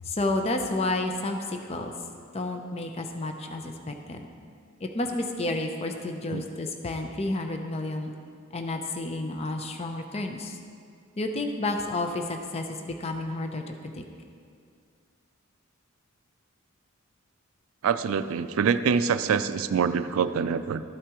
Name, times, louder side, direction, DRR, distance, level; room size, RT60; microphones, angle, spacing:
voice 1, 0.0-1.9 2.3-4.3 4.8-8.1 8.5-10.6 11.2-14.0, left 2 dB, 30° left, 4 dB, 0.6 m, -31 dB
voice 2, 17.8-20.8, right 6 dB, 75° right, 12 dB, 0.4 m, -25 dB
12.5 x 8.2 x 3.0 m, 2.2 s
head